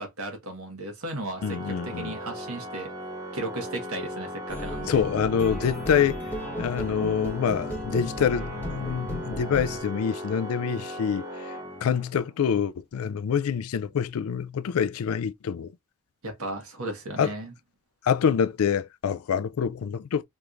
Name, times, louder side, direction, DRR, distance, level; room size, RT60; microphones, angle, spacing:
voice 1, 0.0-2.9 3.3-5.0 16.2-17.5, right 2 dB, 85° right, 1.4 m, -35 dB
voice 2, 1.4-2.2 4.9-6.2 6.6-11.5 11.8-15.7 17.2-17.3 18.0-20.2, left 7 dB, 75° left, 0.4 m, -26 dB
Organ, 1.4-12.3, equal, 15° right, 1.0 m, -38 dB
sound 1, 4.5-9.8, equal, 10° left, 1.1 m, -35 dB
3.4 x 3.0 x 2.5 m
head